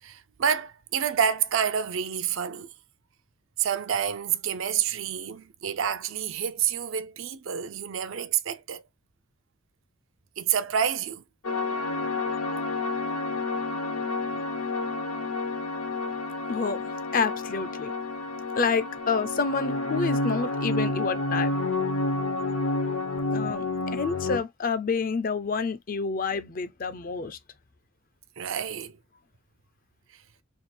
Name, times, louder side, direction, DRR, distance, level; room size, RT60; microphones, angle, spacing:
voice 1, 0.0-2.7 3.6-8.8 10.4-11.2 28.4-29.0 30.1-30.2, right 8 dB, 60° right, 0.5 m, -28 dB
sound 1, 11.4-24.4, left 2 dB, 75° left, 0.8 m, -29 dB
voice 2, 16.5-16.8 17.1-17.9 18.6-21.5 23.3-27.4, left 5 dB, 40° left, 0.4 m, -28 dB
3.5 x 2.4 x 4.2 m
head